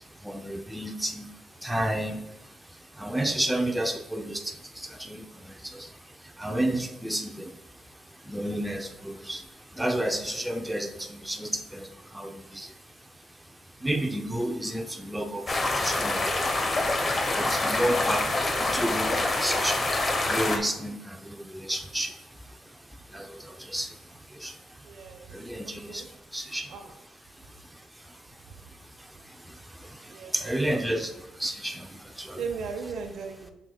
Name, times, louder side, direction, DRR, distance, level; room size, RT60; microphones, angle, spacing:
voice 1, 0.2-1.3 1.6-2.2 3.0-5.9 6.4-7.5 8.3-9.4 9.8-11.9 12.1-12.7 13.8-15.5 15.7-16.3 16.6-16.7 17.4-18.3 18.6-22.1 23.1-23.9 24.4-24.5 25.3-26.0 26.3-26.7 30.3-31.1 31.4-31.9 32.2-32.4, right 1 dB, 5° right, 4 dB, 0.6 m, -31 dB
sound 1, 15.5-20.6, left 2 dB, 35° left, 1.0 m, -26 dB
voice 2, 24.9-25.3 25.6-26.1 26.7-26.9 30.1-31.1 32.4-33.5, right 5 dB, 70° right, 3 dB, 0.8 m, -37 dB
7.7 x 6.2 x 2.3 m, 0.91 s
cardioid pair, 90°, 0 cm